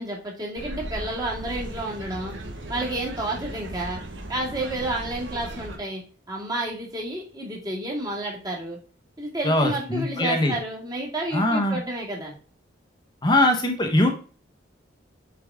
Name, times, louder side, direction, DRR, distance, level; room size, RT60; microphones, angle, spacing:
voice 1, 0.0-2.3 2.7-4.0 4.3-6.0 6.3-8.8 9.2-12.3, right 1 dB, 20° right, -2 dB, 2.2 m, -30 dB
sound 1, 0.6-5.8, right 1 dB, 75° right, 1.4 m, -37 dB
voice 2, 9.4-10.5 11.3-11.8 13.2-14.2, left 1 dB, 25° left, 4 dB, 1.1 m, -21 dB
7.4 x 4.9 x 3.6 m, 0.38 s
head